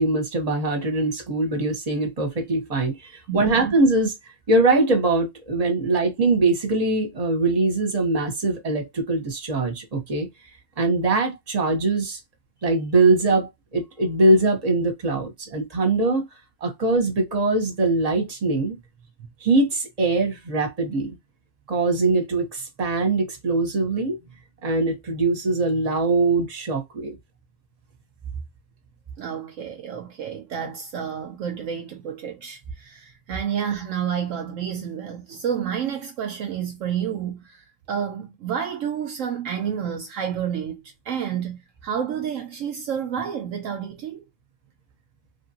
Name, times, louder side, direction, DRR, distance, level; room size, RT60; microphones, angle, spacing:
voice 1, 0.0-4.1 4.5-10.3 10.8-12.2 12.6-16.2 16.6-18.7 19.4-21.2 21.7-24.2 24.6-27.2, right 2 dB, 30° right, 1.1 m, -22 dB
voice 2, 3.3-3.7 29.2-40.8 41.1-44.2, right 8 dB, 70° right, 0.9 m, -30 dB
3.3 x 2.5 x 2.8 m
omnidirectional pair, 1.5 m